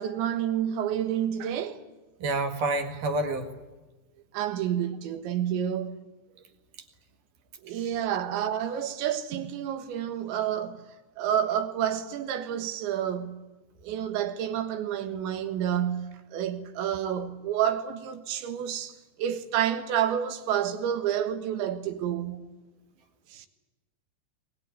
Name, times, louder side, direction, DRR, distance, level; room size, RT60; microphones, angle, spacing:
voice 1, 0.0-1.8 4.3-6.0 7.6-10.8 11.2-13.4 13.8-22.5 23.3-23.5, right 10 dB, 75° right, 3.7 m, -29 dB
voice 2, 2.2-3.5, right 2 dB, 55° right, 3.0 m, -28 dB
22.5 x 21.0 x 9.6 m
omnidirectional pair, 5.4 m